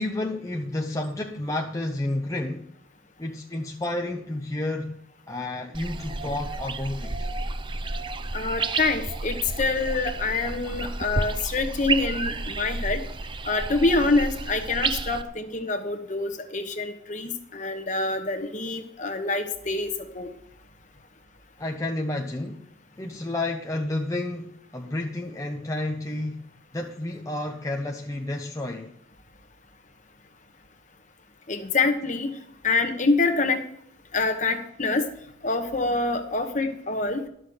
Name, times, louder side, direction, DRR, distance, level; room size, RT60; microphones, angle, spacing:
voice 1, 0.0-2.7 3.2-5.0 5.3-7.3 21.6-22.7 23.0-28.9, left 1 dB, 15° left, 0.6 m, -31 dB
sound 1, 5.7-15.2, right 3 dB, 25° right, 0.5 m, -31 dB
voice 2, 8.3-13.0 13.4-20.3 31.5-32.3 32.6-33.6 34.1-35.1 35.4-37.2, left 3 dB, 40° left, 1.1 m, -26 dB
12.5 x 6.3 x 7.9 m
head